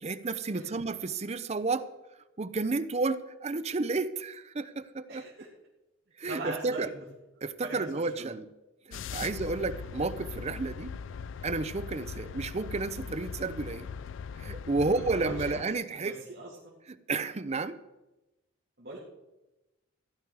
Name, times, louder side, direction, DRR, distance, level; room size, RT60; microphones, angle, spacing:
voice 1, 0.0-1.9 2.4-5.2 6.2-6.9 7.4-8.5 8.9-11.0 11.4-13.9 14.4-16.2 16.9-17.8, right 3 dB, 35° right, 13 dB, 0.6 m, -31 dB
voice 2, 5.1-5.5 6.2-7.0 7.6-8.3 9.1-9.2 14.8-15.6 16.0-16.7 18.8-19.0, right 2 dB, 55° right, -4 dB, 2.1 m, -41 dB
sound 1, 8.9-15.6, left 6 dB, 65° left, 0.3 m, -40 dB
15.5 x 11.0 x 4.8 m, 1.0 s
head